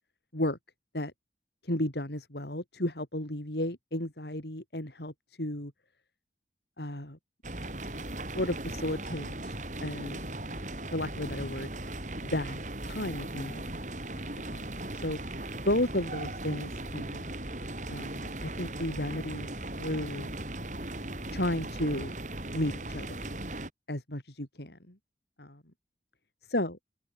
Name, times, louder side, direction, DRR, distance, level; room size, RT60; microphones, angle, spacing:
voice 1, 1.6-5.7 6.8-7.2 8.3-9.5 9.8-10.3 10.9-11.7 12.2-12.6 12.9-13.7 14.1-14.7 14.9-15.2 15.6-17.3 17.9-19.5 19.7-20.3 21.3-22.1 22.5-23.3 23.9-24.9 25.4-25.6 26.5-26.8, left 1 dB, 70° left, 4.6 m, -33 dB
sound 1, 7.4-23.7, right 1 dB, 45° right, 5.6 m, -38 dB
open air
head